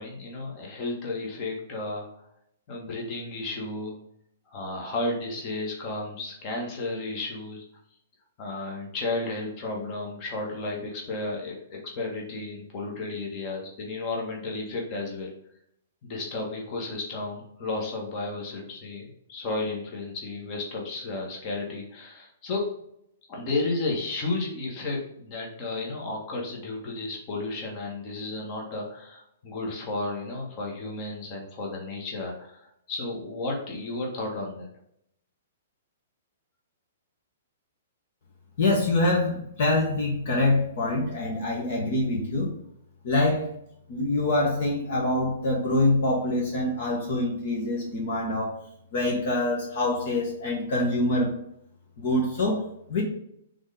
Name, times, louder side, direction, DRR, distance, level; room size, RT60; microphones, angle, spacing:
voice 1, 0.0-2.1 2.7-4.0 4.5-7.6 8.4-11.6 12.0-15.3 16.0-22.7 23.3-34.7, left 2 dB, 35° left, -1 dB, 1.8 m, -33 dB
voice 2, 38.6-42.5 43.0-43.5 43.9-48.5 48.9-51.3 52.0-52.6 52.9-53.0, left 2 dB, 50° left, -2 dB, 1.6 m, -25 dB
6.1 x 4.0 x 5.0 m, 0.75 s
figure-of-eight pair, 110°, 0 cm